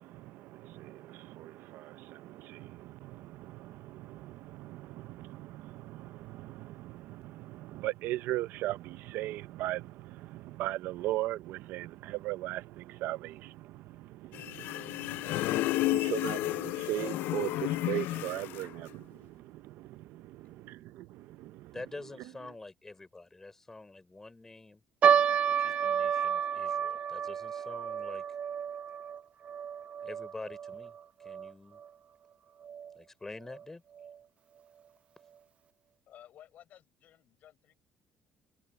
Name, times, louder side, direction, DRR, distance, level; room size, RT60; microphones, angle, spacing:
voice 1, 0.0-21.7, right 16 dB, 75° right, 0.6 m, -39 dB
sound 1, 14.3-18.7, left 17 dB, 70° left, 0.3 m, -32 dB
voice 2, 21.7-24.8 25.5-28.2 30.0-30.9 31.2-31.8 32.9-33.8, left 2 dB, 10° left, 4.6 m, -46 dB
sound 2, 25.0-31.5 31.8-31.9 32.6-32.9 33.5-33.6 34.0-34.1, right 8 dB, 35° right, 0.3 m, -30 dB
voice 3, 36.1-37.7, left 11 dB, 50° left, 4.3 m, -56 dB
cardioid pair, 160°, 4 cm